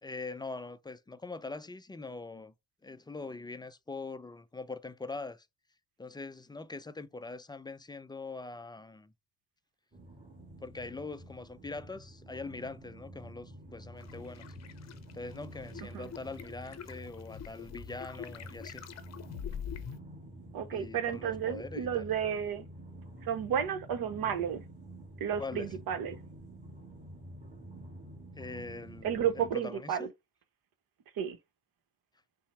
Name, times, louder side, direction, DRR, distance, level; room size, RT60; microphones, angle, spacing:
voice 1, 0.0-2.5 2.8-5.5 6.0-9.1 10.6-14.5 15.1-18.8 20.7-22.0 25.4-25.7 28.4-30.0, left 3 dB, 10° left, 0.4 m, -43 dB
sound 1, 9.9-29.5, right 1 dB, 15° right, 1.6 m, -49 dB
sound 2, 14.0-20.0, left 8 dB, 40° left, 0.7 m, -45 dB
voice 2, 20.5-22.6 23.2-24.6 25.2-26.2 29.0-30.1 31.2-31.4, right 8 dB, 60° right, 1.0 m, -32 dB
5.5 x 2.1 x 4.4 m
hypercardioid pair, 55°, 41 cm